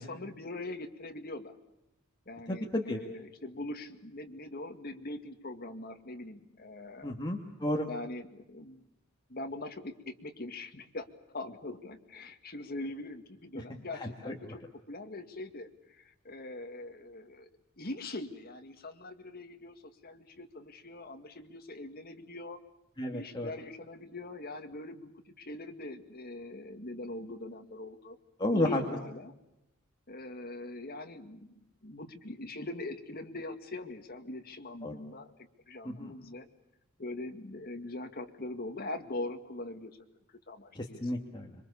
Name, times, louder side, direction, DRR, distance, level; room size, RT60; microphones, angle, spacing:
voice 1, 0.0-1.5 2.3-7.2 7.9-8.8 9.3-14.6 14.9-17.5 17.8-22.6 23.1-28.2 28.5-29.3 30.1-35.3 35.7-36.5 37.0-40.0 40.5-41.0, left 2 dB, 45° left, 6 dB, 2.2 m, -42 dB
voice 2, 2.5-3.0 7.0-7.9 13.5-13.6 14.0-14.5 23.0-23.5 28.4-28.8 34.8-35.0 35.8-36.2 40.7-41.6, left 1 dB, 20° left, 1 dB, 2.2 m, -32 dB
26.0 x 25.0 x 7.1 m, 0.89 s
head